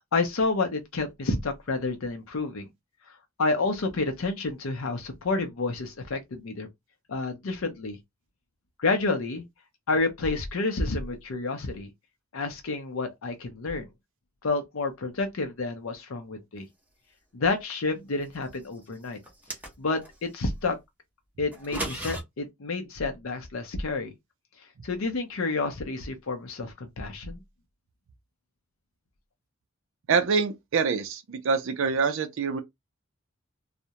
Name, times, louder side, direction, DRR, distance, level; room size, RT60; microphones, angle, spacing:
voice 1, 0.0-2.7 3.4-6.7 7.1-8.0 8.8-9.4 9.9-11.9 12.3-13.9 14.4-16.7 17.3-19.2 19.8-20.8 21.4-24.1 24.8-27.4, left 3 dB, 70° left, 0.6 m, -29 dB
sound 1, 19.2-20.1 21.5-22.2, right 1 dB, 10° right, 0.8 m, -35 dB
voice 2, 30.1-32.6, right 5 dB, 65° right, 0.4 m, -25 dB
2.3 x 2.0 x 2.8 m
head